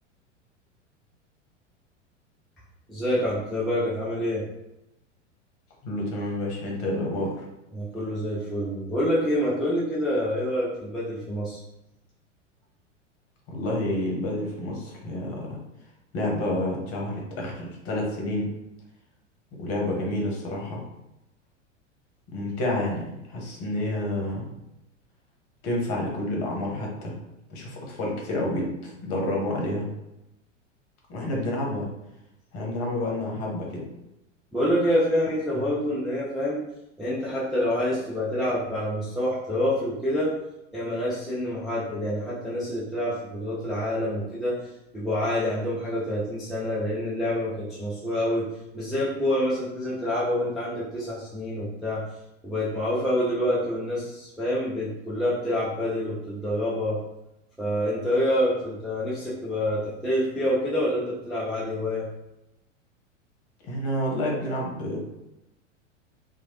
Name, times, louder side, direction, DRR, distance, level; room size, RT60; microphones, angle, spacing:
voice 1, 2.9-4.4 7.7-11.6 34.5-36.6 37.0-40.3 40.7-44.6 44.9-48.5 48.7-52.0 52.4-57.0 57.6-62.0, equal, ahead, -8 dB, 0.3 m, -27 dB
voice 2, 5.8-7.3 13.5-15.6 16.1-18.5 19.6-20.8 22.3-24.5 25.6-27.1 27.5-29.9 31.1-31.9 32.5-33.8 63.6-65.0, left 1 dB, 40° left, -1 dB, 1.0 m, -29 dB
2.9 x 2.3 x 2.9 m, 0.90 s
figure-of-eight pair, 90°, 37 cm